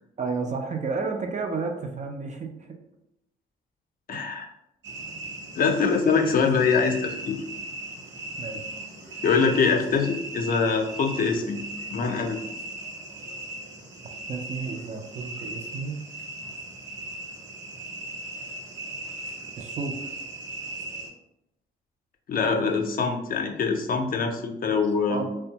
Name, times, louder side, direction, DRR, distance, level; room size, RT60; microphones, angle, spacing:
voice 1, 0.2-2.8 4.1-4.2 8.4-8.6 14.3-16.0 19.6-19.9 25.1-25.4, right 4 dB, 35° right, 3 dB, 0.4 m, -31 dB
voice 2, 4.1-4.5 5.6-7.4 9.2-11.6 11.9-12.4 22.3-25.2, left 5 dB, 45° left, 3 dB, 0.5 m, -24 dB
sound 1, 4.8-21.1, right 2 dB, 65° right, 0.8 m, -38 dB
2.5 x 2.2 x 2.8 m, 0.84 s
cardioid pair, 90°, 20 cm